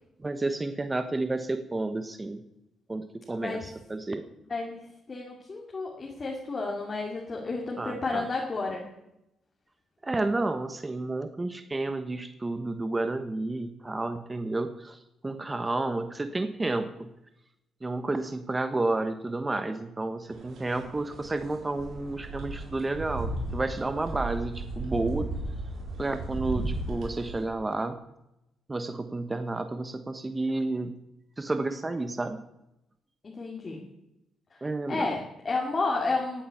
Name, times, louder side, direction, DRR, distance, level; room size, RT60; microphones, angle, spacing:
voice 1, 0.2-2.4 2.9-4.2 7.8-8.3 10.0-17.1 17.8-25.3 26.0-28.0 28.7-30.9 31.4-32.4 34.6-35.1, right 2 dB, 20° right, 9 dB, 1.1 m, -31 dB
voice 2, 4.5-8.9 33.2-33.8 34.5-36.4, left 3 dB, 35° left, -1 dB, 2.7 m, -32 dB
sound 1, 20.3-27.4, right 2 dB, 65° right, 4.2 m, -35 dB
16.5 x 8.9 x 7.2 m, 0.86 s
cardioid pair, 90°, 0 cm